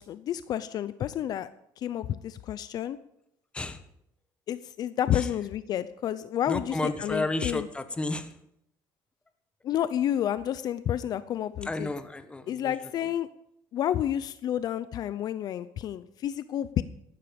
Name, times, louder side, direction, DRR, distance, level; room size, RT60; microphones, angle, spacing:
voice 1, 0.0-1.5 1.8-3.0 4.5-7.7 9.6-11.9 12.5-13.3 13.7-16.8, left 11 dB, 55° left, 14 dB, 0.6 m, -30 dB
voice 2, 6.5-8.3 11.6-12.7, left 2 dB, 15° left, 10 dB, 1.3 m, -32 dB
15.5 x 12.0 x 5.3 m, 0.78 s
cardioid pair, 120°, 8 cm